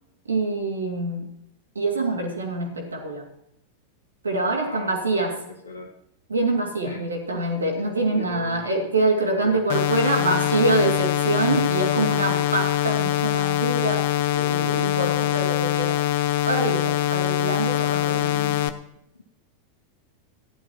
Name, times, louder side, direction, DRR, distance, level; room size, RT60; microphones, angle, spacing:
voice 1, 0.3-1.3 1.7-3.3 4.2-5.4 6.3-14.2 14.5-16.0 16.4-18.6, right 2 dB, 75° right, 1 dB, 2.4 m, -25 dB
voice 2, 4.6-5.9 6.8-7.0 7.9-8.7 9.4-9.6 11.5-12.5 14.3-15.7 17.7-18.8 19.1-19.2, left 2 dB, 75° left, 3 dB, 1.8 m, -37 dB
sound 1, 9.7-18.7, left 12 dB, 55° left, 0.7 m, -23 dB
14.5 x 11.0 x 3.0 m, 0.78 s
figure-of-eight pair, 90°, 0 cm